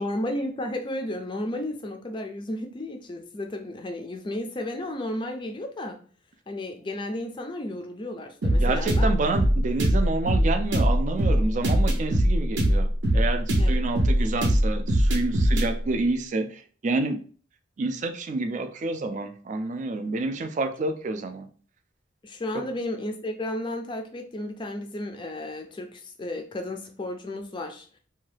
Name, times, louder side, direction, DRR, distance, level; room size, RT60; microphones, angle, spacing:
voice 1, 0.0-6.0 6.5-9.1 13.6-13.8 14.2-14.4 22.2-27.9, left 1 dB, 25° left, 6 dB, 0.4 m, -33 dB
sound 1, 8.4-15.7, equal, 80° right, 0.7 m, -21 dB
voice 2, 8.5-17.2 17.8-21.5, right 3 dB, 40° right, 7 dB, 0.3 m, -29 dB
2.7 x 2.3 x 3.2 m, 0.42 s
head